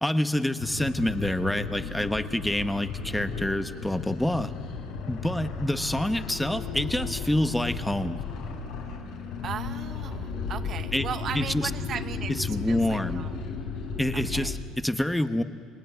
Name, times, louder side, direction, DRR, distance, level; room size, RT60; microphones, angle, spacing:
voice 1, 0.0-4.5 5.1-8.2 10.9-11.1 11.3-11.7 12.3-13.3 14.0-15.4, left 1 dB, 5° left, 9 dB, 1.1 m, -27 dB
sound 1, 0.6-14.5, left 5 dB, 75° left, 5.0 m, -34 dB
voice 2, 9.4-12.3 12.7-13.4 14.1-14.5, right 8 dB, 50° right, 10 dB, 1.0 m, -37 dB
29.5 x 18.5 x 9.4 m, 2.4 s
supercardioid pair, 90°, 0 cm